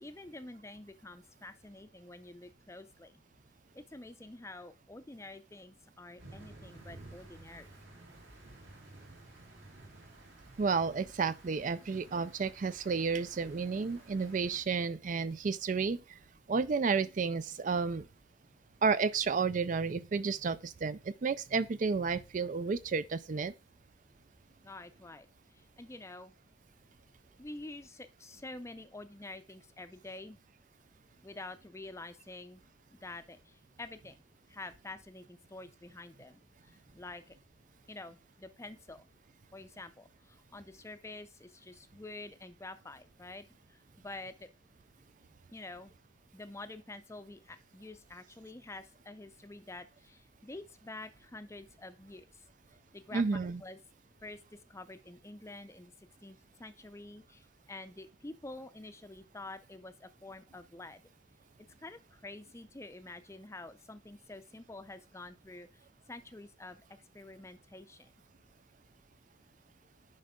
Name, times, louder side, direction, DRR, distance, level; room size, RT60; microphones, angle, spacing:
voice 1, 0.0-3.1 3.9-7.7 24.6-25.3 25.8-26.3 27.4-30.4 31.2-32.6 33.0-33.4 33.8-34.1 34.5-36.4 36.9-37.2 37.9-39.0 39.5-40.0 40.5-43.4 44.0-44.3 45.5-45.9 46.3-49.9 50.4-52.2 52.9-53.2 53.6-53.8 54.2-54.4 54.7-55.9 56.2-57.2 57.7-61.0 61.8-65.7 66.1-66.8 67.1-68.0, left 2 dB, 15° left, 0.5 m, -47 dB
sound 1, 6.2-14.6, right 2 dB, 70° right, 3.3 m, -54 dB
voice 2, 10.6-16.2 16.5-18.1 18.8-23.5 53.1-53.6, right 5 dB, 45° right, 0.4 m, -31 dB
10.5 x 5.2 x 3.7 m
head